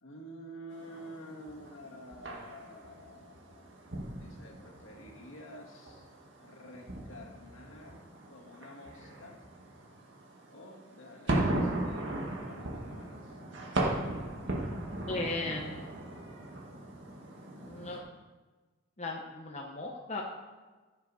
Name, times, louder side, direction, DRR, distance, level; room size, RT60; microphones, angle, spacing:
voice 1, 0.0-3.8 4.1-6.1 6.4-9.4 10.5-12.1 12.4-13.4, equal, 70° left, -1 dB, 2.0 m, -50 dB
sound 1, 0.7-18.0, right 1 dB, 60° right, 1.7 m, -38 dB
voice 2, 15.0-15.9 17.5-18.0 19.0-20.2, left 2 dB, 35° left, 0 dB, 0.9 m, -37 dB
15.0 x 6.9 x 4.1 m, 1.3 s
head